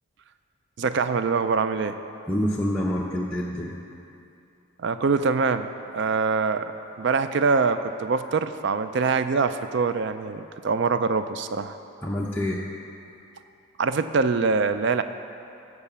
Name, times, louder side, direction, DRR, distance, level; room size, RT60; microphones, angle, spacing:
voice 1, 0.8-2.0 4.8-5.7 5.9-6.7 7.0-11.7 13.8-15.0, right 4 dB, 55° right, 10 dB, 0.4 m, -24 dB
voice 2, 2.3-3.7 12.0-12.6, equal, 10° left, -5 dB, 0.6 m, -26 dB
14.5 x 4.9 x 6.8 m, 2.7 s
head